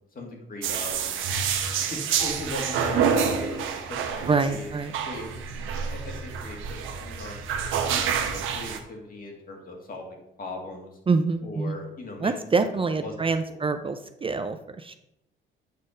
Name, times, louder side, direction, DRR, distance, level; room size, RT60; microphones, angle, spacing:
voice 1, 0.1-1.1 1.9-4.7 5.0-5.3 5.9-7.6 7.9-11.0 11.4-12.3 13.0-13.1, left 2 dB, 45° left, 1 dB, 2.1 m, -39 dB
sound 1, 0.6-8.8, right 7 dB, 85° right, 1.0 m, -28 dB
voice 2, 4.3-4.9 11.1-11.8 12.2-14.9, right 4 dB, 25° right, 9 dB, 0.5 m, -26 dB
8.4 x 4.2 x 5.0 m, 0.84 s
cardioid pair, 90°, 20 cm